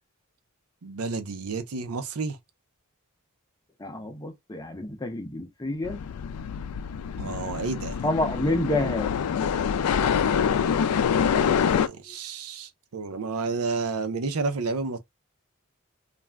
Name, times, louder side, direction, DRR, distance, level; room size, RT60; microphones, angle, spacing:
voice 1, 0.8-2.4 7.2-7.9 11.7-15.0, right 4 dB, 90° right, 0.6 m, -30 dB
voice 2, 3.8-6.0 8.0-9.1 12.1-12.2, left 1 dB, 20° left, 0.7 m, -28 dB
sound 1, 5.8-11.9, left 7 dB, 90° left, 0.3 m, -25 dB
2.5 x 2.2 x 3.3 m
head